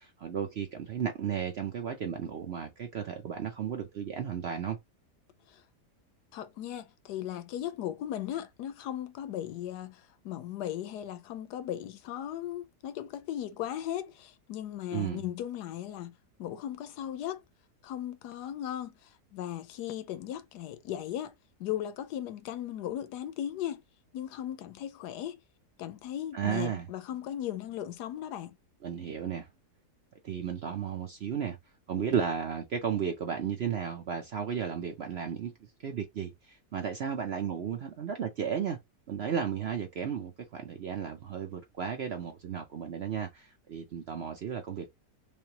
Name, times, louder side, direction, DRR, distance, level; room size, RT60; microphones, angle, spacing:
voice 1, 0.0-4.8 14.9-15.2 26.3-26.9 28.8-29.5 30.2-31.6 31.9-35.5 35.8-38.8 39.1-44.9, right 8 dB, 60° right, 0.6 m, -34 dB
voice 2, 6.3-16.1 16.4-17.4 17.8-18.9 19.3-21.3 21.6-23.8 24.1-25.4 25.8-28.6, left 11 dB, 85° left, 1.2 m, -37 dB
3.3 x 3.3 x 2.9 m
omnidirectional pair, 1.7 m